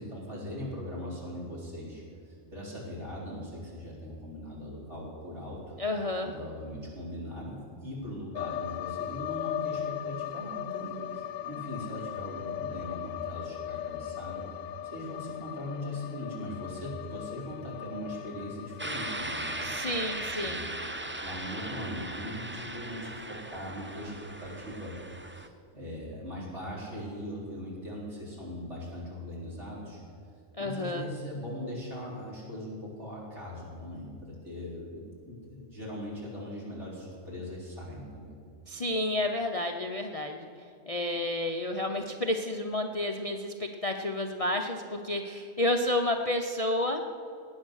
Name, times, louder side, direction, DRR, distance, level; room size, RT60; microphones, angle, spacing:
voice 1, 0.0-5.8 6.2-14.4 14.8-19.7 20.1-24.9 25.3-30.0 30.6-38.3, left 1 dB, 60° right, -5 dB, 4.3 m, -40 dB
voice 2, 5.8-6.3 19.6-20.6 30.6-31.1 38.7-40.5 40.9-47.0, left 1 dB, 35° left, 3 dB, 0.6 m, -30 dB
sound 1, 8.3-20.3, left 11 dB, 90° left, 1.0 m, -38 dB
sound 2, 18.8-25.5, right 1 dB, 15° right, 0.4 m, -38 dB
19.0 x 8.8 x 6.4 m, 2.5 s
omnidirectional pair, 1.3 m